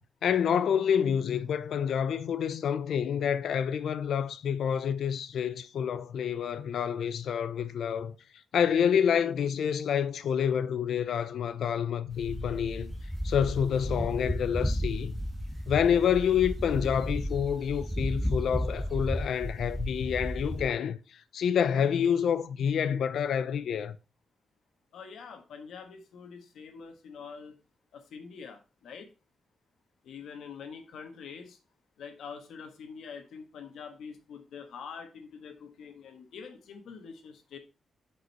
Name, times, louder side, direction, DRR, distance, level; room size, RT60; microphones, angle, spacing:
voice 1, 0.2-8.2 8.5-12.9 13.2-15.2 15.7-21.0 21.3-24.0, left 8 dB, 70° left, 0.6 m, -28 dB
sound 1, 12.1-20.6, equal, 5° right, 1.8 m, -33 dB
voice 2, 24.9-27.6 27.9-29.1 30.0-31.6 32.0-37.6, left 6 dB, 90° left, 1.4 m, -45 dB
7.9 x 5.4 x 4.1 m
wide cardioid pair, 175°, 0 cm